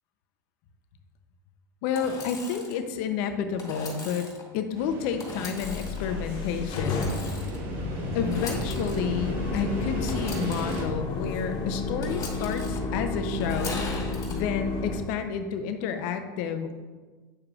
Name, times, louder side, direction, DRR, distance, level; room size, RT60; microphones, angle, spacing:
voice 1, 1.8-4.3 4.5-7.1 8.1-13.9 14.3-16.7, left 7 dB, 65° left, 7 dB, 0.7 m, -30 dB
Engine / Sawing, 1.9-2.8 3.6-4.4 5.2-6.0 6.7-7.6 8.2-9.0 10.1-10.8 12.0-12.8 13.4-14.3, left 3 dB, 30° left, 2.2 m, -39 dB
sound 1, 4.8-10.8, right 2 dB, 60° right, 1.7 m, -36 dB
sound 2, 5.6-15.0, left 3 dB, 45° left, 1.5 m, -32 dB
8.5 x 6.6 x 2.4 m, 1.3 s
hypercardioid pair, 100°, 11 cm